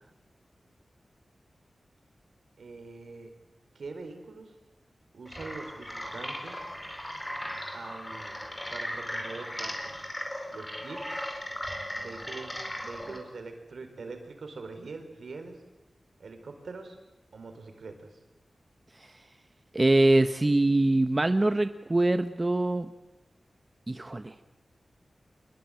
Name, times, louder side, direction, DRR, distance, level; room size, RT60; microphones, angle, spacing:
voice 1, 2.6-3.3 3.7-4.6 5.1-6.7 7.7-8.4 8.7-9.9 10.5-11.3 12.0-15.6 16.2-17.0 17.3-18.2, right 3 dB, 80° right, 6 dB, 4.5 m, -43 dB
sound 1, 5.3-13.2, equal, 15° left, 5.0 m, -37 dB
voice 2, 19.7-22.9 23.9-24.3, right 2 dB, 30° right, 9 dB, 1.0 m, -23 dB
25.5 x 21.0 x 9.0 m, 0.99 s
wide cardioid pair, 65°, 0 cm